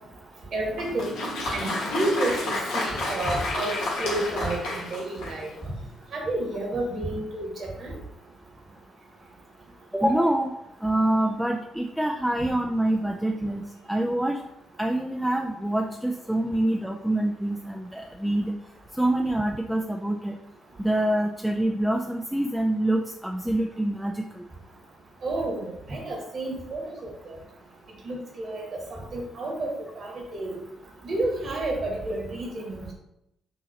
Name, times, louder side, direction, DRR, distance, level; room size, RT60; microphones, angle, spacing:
voice 1, 0.5-1.1 1.5-5.7 6.1-7.5 7.8-7.9 25.2-27.4 28.0-28.6 28.9-30.5 31.0-32.9, right 2 dB, 50° right, -1 dB, 1.6 m, -30 dB
Applause, 0.7-5.6, left 2 dB, 70° left, 1.0 m, -31 dB
voice 2, 9.9-10.5 10.8-14.4 14.8-18.6 19.0-20.4 20.8-24.4, right 1 dB, 5° right, 1 dB, 0.5 m, -26 dB
6.3 x 2.9 x 2.9 m, 0.82 s
figure-of-eight pair, 45°, 0 cm